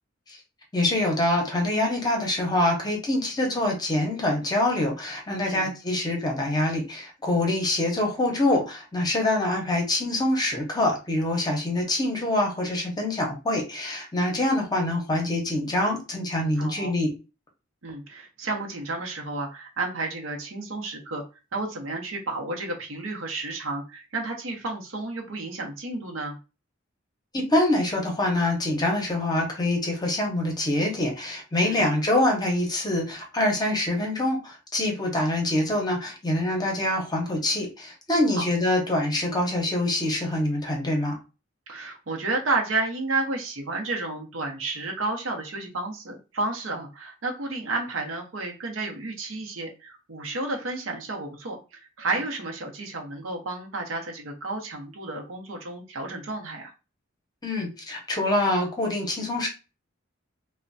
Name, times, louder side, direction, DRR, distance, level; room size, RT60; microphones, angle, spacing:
voice 1, 0.7-17.1 27.3-41.1 57.4-59.5, left 1 dB, 20° left, 0 dB, 0.7 m, -25 dB
voice 2, 16.6-16.9 17.8-21.2 21.5-26.4 31.6-31.8 38.4-38.5 41.7-56.7, right 3 dB, 70° right, 2 dB, 0.7 m, -31 dB
3.1 x 2.1 x 2.5 m, 0.30 s
head